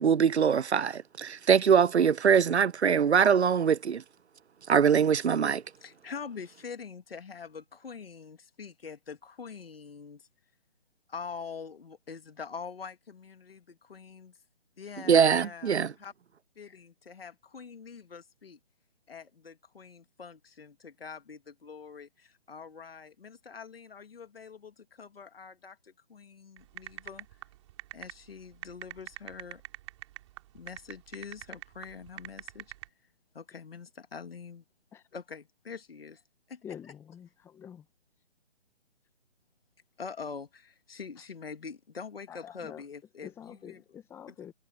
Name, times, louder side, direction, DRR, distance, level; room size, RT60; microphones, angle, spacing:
voice 1, 0.0-4.0 4.7-5.6 15.1-15.9, right 7 dB, 85° right, 0.5 m, -23 dB
voice 2, 5.8-10.3 11.1-14.3 14.8-16.1 16.6-18.6 19.1-27.3 27.9-29.6 30.5-32.7 33.3-34.6 35.1-36.2 36.5-36.6 40.0-43.8, left 5 dB, 60° left, 2.3 m, -44 dB
sound 1, 26.6-32.9, right 17 dB, 25° right, 5.1 m, -43 dB
voice 3, 36.6-37.9 42.3-42.8 43.2-44.5, left 9 dB, 5° left, 1.5 m, -46 dB
figure-of-eight pair, 145°, 33 cm